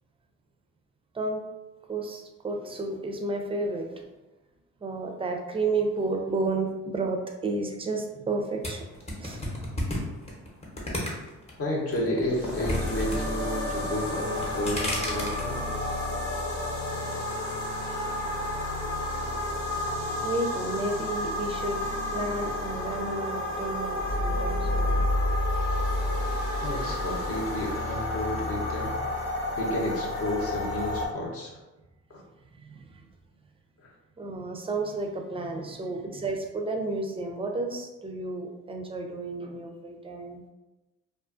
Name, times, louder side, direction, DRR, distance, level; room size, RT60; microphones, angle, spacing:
voice 1, 1.9-4.1 4.8-8.9 9.2-9.4 17.8-18.0 20.2-21.8 22.1-25.0 32.6-33.0 34.2-40.4, right 3 dB, 20° right, 2 dB, 0.4 m, -32 dB
sound 1, 8.6-11.5 11.9-13.2 13.4-13.9 14.3-15.4, left 1 dB, 20° left, 0.8 m, -32 dB
voice 2, 11.6-15.7 26.6-31.6 32.1-32.2 33.8-33.9, left 1 dB, 50° left, -2 dB, 0.8 m, -32 dB
sound 2, 12.1-31.1, left 1 dB, 70° left, 1.0 m, -31 dB
sound 3, 24.0-27.7, left 1 dB, 85° left, 1.2 m, -29 dB
2.4 x 2.4 x 2.4 m, 1.1 s
cardioid pair, 90°, 30 cm